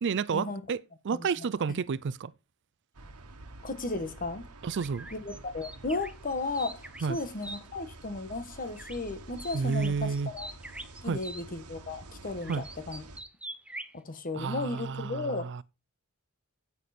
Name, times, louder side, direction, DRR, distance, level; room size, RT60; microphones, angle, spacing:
voice 1, 0.0-2.3 4.6-5.1 7.0-7.2 9.5-10.3 11.0-11.2 12.5-12.7 14.3-15.6, right 5 dB, 55° right, 0.4 m, -31 dB
voice 2, 1.1-1.8 3.6-4.5 5.1-10.5 11.0-13.0 13.9-15.5, left 2 dB, 40° left, 1.4 m, -35 dB
sound 1, 2.9-13.2, right 2 dB, 85° right, 1.4 m, -49 dB
sound 2, 4.7-7.6 8.8-9.1 9.4-11.4 12.4-14.0, right 2 dB, 5° right, 0.7 m, -44 dB
9.2 x 8.3 x 4.3 m
head